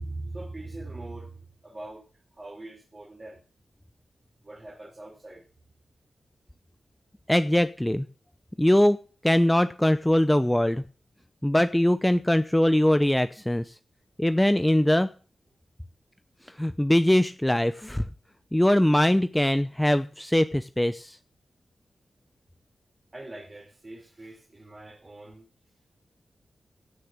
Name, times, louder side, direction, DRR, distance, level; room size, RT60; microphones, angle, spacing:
voice 1, 0.0-2.0 2.4-3.4 4.4-5.4 23.1-25.5, right 2 dB, 35° right, 3.9 m, -41 dB
voice 2, 7.3-8.0 8.6-9.0 9.2-10.8 11.4-13.7 14.2-15.1 16.6-18.0 18.5-21.2, left 1 dB, 10° left, 0.8 m, -22 dB
16.0 x 6.6 x 6.7 m
cardioid pair, 55°, 0 cm